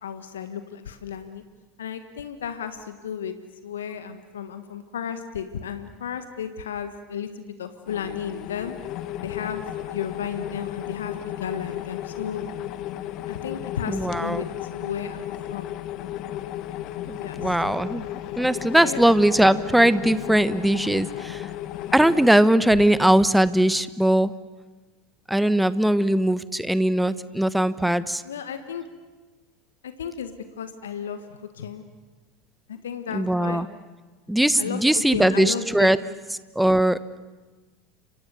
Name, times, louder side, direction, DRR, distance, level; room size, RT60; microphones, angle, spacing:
voice 1, 0.0-1.4 1.8-3.3 3.6-8.7 9.2-9.6 9.9-12.4 13.3-14.5 14.7-15.7 17.2-17.6 18.8-19.0 28.2-28.9 29.8-31.8 32.7-33.6 34.6-34.8 35.1-36.1, left 8 dB, 75° left, 9 dB, 1.6 m, -33 dB
sound 1, 7.9-22.3, left 13 dB, 50° left, 1.6 m, -34 dB
voice 2, 13.9-14.4 17.1-18.0 18.4-21.5 21.9-24.3 25.3-28.2 33.1-33.7 34.3-36.0 36.5-37.2, right 1 dB, 5° right, 14 dB, 1.2 m, -20 dB
30.0 x 26.5 x 7.1 m, 1.3 s
figure-of-eight pair, 80°, 0 cm